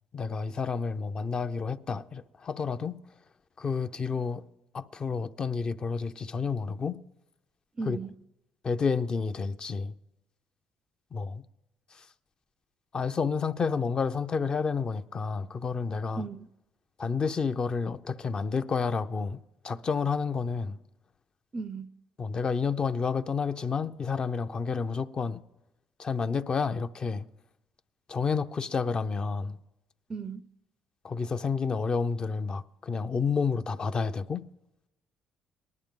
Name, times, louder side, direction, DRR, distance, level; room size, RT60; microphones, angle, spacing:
voice 1, 0.1-3.0 3.6-4.4 4.7-7.0 7.8-8.0 8.6-10.0 11.1-11.4 11.9-12.1 12.9-16.3 17.0-20.8 22.2-25.4 26.0-27.3 28.1-29.6 31.0-34.4, left 5 dB, 35° left, 0.5 m, -30 dB
voice 2, 7.8-8.1 16.2-16.5 21.5-21.9 30.1-30.4, right 4 dB, 30° right, 0.4 m, -36 dB
19.0 x 12.0 x 3.7 m
cardioid pair, 105°, 3 cm